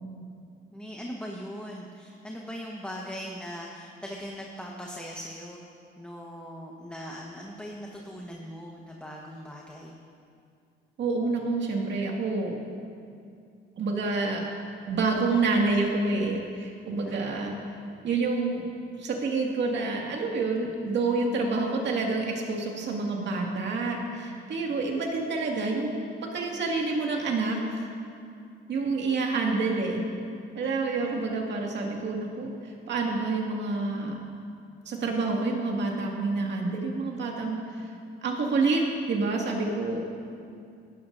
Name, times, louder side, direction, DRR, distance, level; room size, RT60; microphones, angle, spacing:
voice 1, 0.7-5.6 6.0-10.0 17.0-17.2, equal, 5° left, -2 dB, 1.2 m, -40 dB
voice 2, 11.0-12.6 13.8-14.5 14.9-17.6 18.0-18.6 19.0-26.0 26.3-27.6 28.7-30.0 30.5-32.5 32.9-34.2 34.9-37.6 38.2-38.8 39.1-40.0, right 3 dB, 65° right, 0 dB, 2.1 m, -28 dB
17.0 x 12.0 x 2.7 m, 2.4 s
cardioid pair, 90°, 20 cm